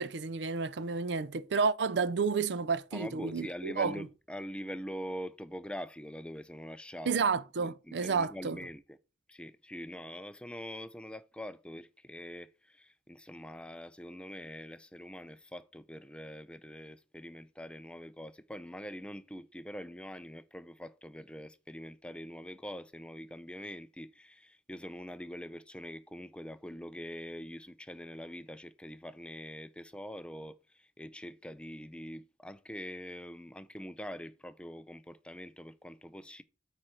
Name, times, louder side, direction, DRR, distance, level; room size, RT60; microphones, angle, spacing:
voice 1, 0.0-4.1 7.1-8.6, right 5 dB, 85° right, 0.5 m, -31 dB
voice 2, 2.9-7.2 7.6-9.0 9.3-36.4, equal, 5° left, 0.4 m, -44 dB
8.9 x 4.4 x 4.8 m
head